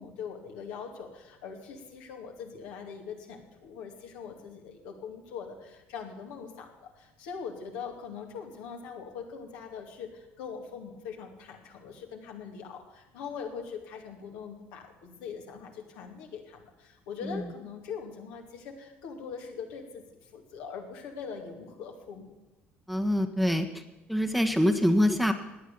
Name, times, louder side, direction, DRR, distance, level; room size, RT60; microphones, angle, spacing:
voice 1, 0.0-22.3, left 6 dB, 65° left, 2 dB, 2.6 m, -42 dB
voice 2, 22.9-23.7 24.1-25.3, equal, ahead, 6 dB, 1.4 m, -24 dB
17.0 x 10.0 x 7.0 m, 1.1 s
figure-of-eight pair, 55°, 6 cm